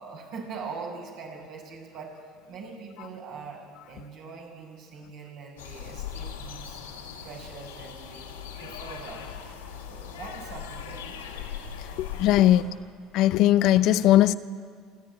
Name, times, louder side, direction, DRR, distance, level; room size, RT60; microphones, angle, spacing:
voice 1, 0.0-2.2 2.5-6.8 7.2-8.3 8.6-9.3 9.9-11.5, right 4 dB, 65° right, 6.9 m, -42 dB
sound 1, 5.6-12.6, left 7 dB, 85° left, 2.9 m, -39 dB
voice 2, 11.8-12.7 13.1-14.3, left 13 dB, 60° left, 0.7 m, -20 dB
27.5 x 12.0 x 9.8 m
hypercardioid pair, 70°, 0 cm